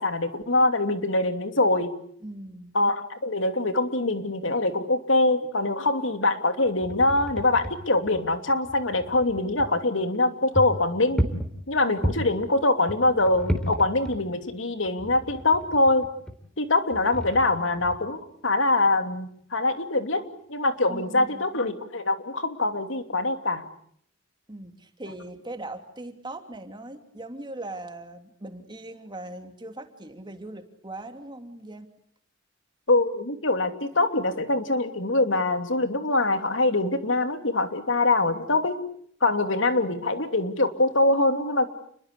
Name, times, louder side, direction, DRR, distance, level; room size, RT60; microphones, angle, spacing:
voice 1, 0.0-1.9 2.7-11.2 11.7-16.1 16.6-20.2 20.5-23.7 32.9-38.8 39.2-41.7, left 2 dB, 80° left, 7 dB, 2.9 m, -24 dB
voice 2, 2.2-2.8 20.9-21.5 24.5-31.9, right 2 dB, 25° right, 6 dB, 3.0 m, -40 dB
sound 1, 6.7-9.7 10.2-10.3 10.5-12.4 12.9-14.6 14.9-16.3 16.9-18.2, equal, 5° left, 3.6 m, -32 dB
30.0 x 22.0 x 8.4 m, 0.64 s
head